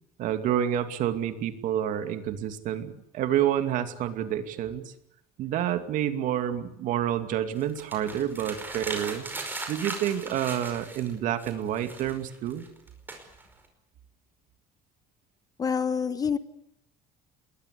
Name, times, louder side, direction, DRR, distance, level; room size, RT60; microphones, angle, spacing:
voice 1, 0.2-4.8 5.4-9.2 9.7-12.6, right 10 dB, 55° right, 9 dB, 2.5 m, -28 dB
sound 1, 7.6-11.1 11.4-13.7, right 3 dB, 10° right, 5.1 m, -38 dB
voice 2, 15.6-16.4, left 6 dB, 25° left, 13 dB, 1.2 m, -26 dB
28.5 x 21.5 x 8.4 m, 0.77 s
cardioid pair, 160°, 16 cm